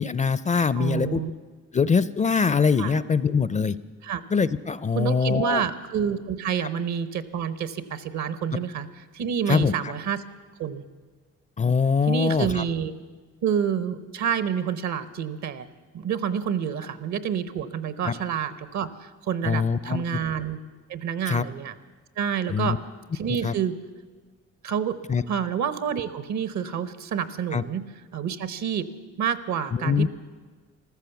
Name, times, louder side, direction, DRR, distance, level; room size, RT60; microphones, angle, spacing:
voice 1, 0.0-1.2 1.7-3.8 4.3-5.6 9.5-9.7 11.6-12.6 18.0-18.1 19.4-20.2 21.3-21.4 22.5-22.8 23.4-23.5 25.1-25.2 27.5-27.6 29.7-30.1, left 5 dB, 25° left, 16 dB, 0.4 m, -23 dB
voice 2, 0.8-1.3 2.8-3.0 4.0-4.2 4.9-8.9 9.1-10.2 10.6-10.8 12.1-12.9 13.4-15.7 15.9-20.6 20.9-21.7 22.2-22.8 23.1-23.8 24.6-25.0 25.3-27.8 28.1-28.9 29.2-30.1, right 8 dB, 65° right, 14 dB, 1.0 m, -28 dB
14.0 x 14.0 x 7.0 m, 1.4 s
cardioid pair, 90°, 30 cm